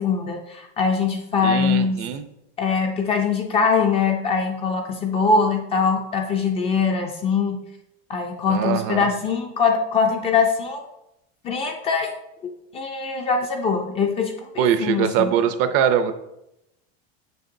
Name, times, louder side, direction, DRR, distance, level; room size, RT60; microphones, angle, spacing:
voice 1, 0.0-2.0 2.6-7.6 8.1-10.8 11.4-12.1 12.4-15.3, left 5 dB, 20° left, 3 dB, 0.3 m, -22 dB
voice 2, 1.4-2.2 8.5-9.1 14.6-16.1, right 9 dB, 45° right, 10 dB, 0.5 m, -22 dB
6.5 x 6.5 x 2.6 m, 0.86 s
supercardioid pair, 165°, 31 cm